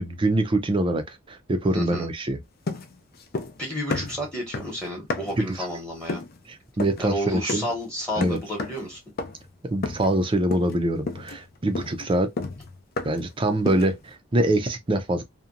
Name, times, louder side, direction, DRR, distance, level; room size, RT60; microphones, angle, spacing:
voice 1, 0.0-2.4 5.4-5.6 6.5-7.6 8.2-8.4 9.6-12.3 13.0-15.2, right 1 dB, 25° right, 0.5 m, -24 dB
voice 2, 1.7-2.1 3.6-6.2 7.0-9.0, equal, 5° left, 0.9 m, -31 dB
sound 1, 2.7-3.6 3.9-5.5 6.1-6.4 6.8-7.1 7.5-7.8 8.2-8.9 9.2-9.5 9.8-10.2 10.5-10.8 11.1-13.3 13.7-14.0, left 3 dB, 50° left, 0.5 m, -32 dB
2.8 x 2.2 x 2.5 m
head